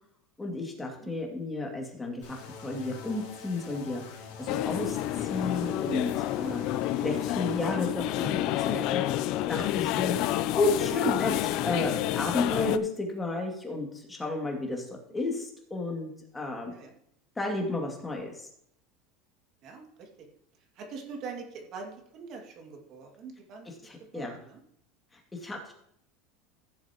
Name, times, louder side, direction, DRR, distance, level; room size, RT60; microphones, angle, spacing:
voice 1, 0.4-2.4 2.6-4.0 4.4-6.6 7.0-9.2 9.5-10.2 10.5-14.9 15.1-16.7 17.4-18.5 23.7-24.4 25.3-25.7, left 2 dB, 10° left, 0 dB, 2.3 m, -32 dB
sound 1, 2.2-7.7, left 4 dB, 80° left, 3.0 m, -45 dB
sound 2, 4.5-12.8, left 13 dB, 55° left, 0.5 m, -29 dB
voice 2, 19.6-20.3 20.8-24.6, right 5 dB, 45° right, 2 dB, 2.2 m, -44 dB
15.5 x 7.3 x 3.0 m, 0.71 s
supercardioid pair, 135°, 0 cm